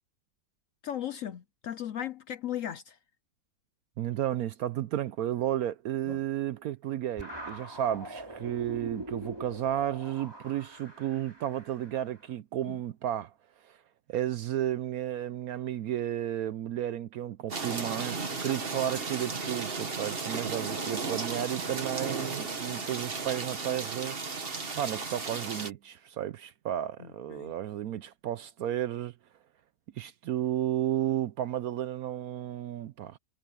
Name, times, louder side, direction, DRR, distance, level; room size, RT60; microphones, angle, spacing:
voice 1, 0.8-3.0 6.1-6.2 12.7-12.8 27.0-27.5, left 10 dB, 65° left, 0.8 m, -37 dB
voice 2, 4.0-13.3 13.6-13.8 14.1-24.2 24.8-29.1 30.0-33.2, right 11 dB, 70° right, 0.9 m, -33 dB
sound 1, 7.2-12.2, right 1 dB, 15° right, 3.1 m, -43 dB
sound 2, 17.5-25.7, right 4 dB, 35° right, 1.7 m, -35 dB
omnidirectional pair, 1.9 m